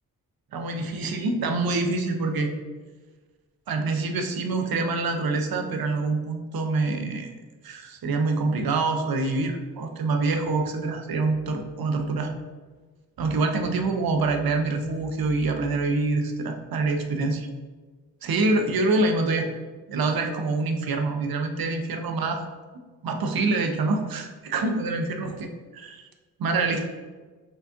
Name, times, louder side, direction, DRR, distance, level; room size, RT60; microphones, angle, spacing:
voice 1, 0.5-2.5 3.7-7.3 7.6-12.3 13.2-17.5 18.2-19.5 19.9-22.4 23.0-25.3 25.7-26.0 26.4-26.9, right 3 dB, 65° right, 5 dB, 0.7 m, -26 dB
4.1 x 3.4 x 3.5 m, 1.3 s
cardioid pair, 55°, 38 cm